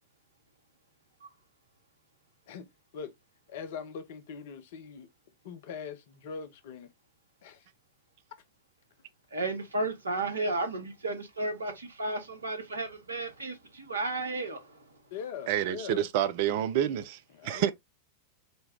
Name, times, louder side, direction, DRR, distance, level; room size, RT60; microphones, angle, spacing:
voice 1, 3.5-5.1 5.4-6.9 7.4-7.7 8.3-8.4 15.1-16.1 17.3-17.7, left 6 dB, 55° left, 0.7 m, -41 dB
voice 2, 9.3-14.8, right 2 dB, 75° right, 1.0 m, -33 dB
voice 3, 15.5-17.7, right 11 dB, 50° right, 0.5 m, -28 dB
4.0 x 2.2 x 3.6 m
figure-of-eight pair, 90°, 0 cm